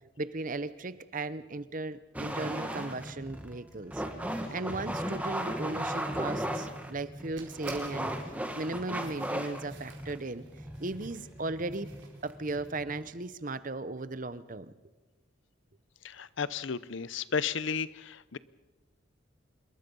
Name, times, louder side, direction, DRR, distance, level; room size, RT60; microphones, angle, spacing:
voice 1, 0.0-4.0 4.5-8.1 8.5-10.4 10.8-11.9 12.2-14.7, right 2 dB, 40° right, 14 dB, 0.9 m, -36 dB
sound 1, 2.1-13.2, right 1 dB, 5° right, 1.8 m, -37 dB
sound 2, 7.2-12.6, right 5 dB, 60° right, 4.5 m, -54 dB
voice 2, 16.0-18.4, left 6 dB, 65° left, 17 dB, 0.7 m, -33 dB
26.5 x 22.0 x 5.5 m, 1.2 s
head